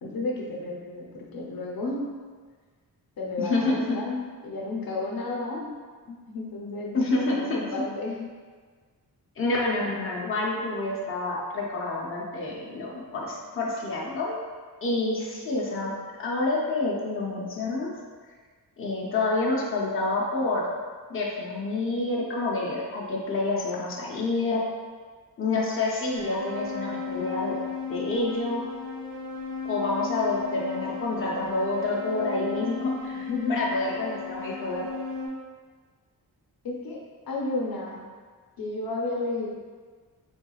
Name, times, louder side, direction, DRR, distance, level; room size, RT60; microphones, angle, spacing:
voice 1, 0.0-2.2 3.2-5.8 6.3-8.3 33.1-33.6 36.6-38.0 38.6-39.5, left 2 dB, 70° left, -2 dB, 0.7 m, -32 dB
voice 2, 3.4-4.0 6.9-7.6 9.4-14.4 14.8-17.9 18.8-20.6 21.1-24.6 25.4-27.6 27.9-28.6 29.7-34.9, left 2 dB, 35° left, -4 dB, 0.7 m, -28 dB
sound 1, 26.1-35.3, left 4 dB, 50° right, 0.9 m, -35 dB
4.4 x 3.8 x 2.3 m, 1.5 s
wide cardioid pair, 145°, 37 cm